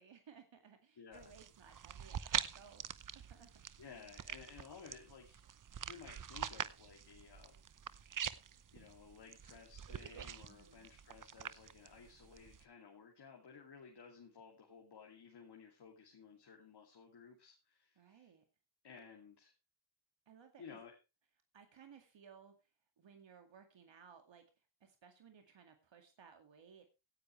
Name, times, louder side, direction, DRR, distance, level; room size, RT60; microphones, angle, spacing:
voice 1, 0.0-2.9 3.1-3.5 3.9-4.1 10.5-10.9 18.0-18.4 20.3-20.8 21.5-22.7 23.0-26.9, right 7 dB, 60° right, 5 dB, 2.3 m, -60 dB
voice 2, 1.0-1.3 3.8-5.4 5.9-7.5 8.7-18.3 18.8-19.5 20.6-21.0, left 6 dB, 55° left, 1 dB, 2.7 m, -56 dB
sound 1, 1.1-12.6, right 8 dB, 40° right, 0.8 m, -45 dB
17.0 x 10.0 x 3.2 m, 0.28 s
cardioid pair, 95°, 49 cm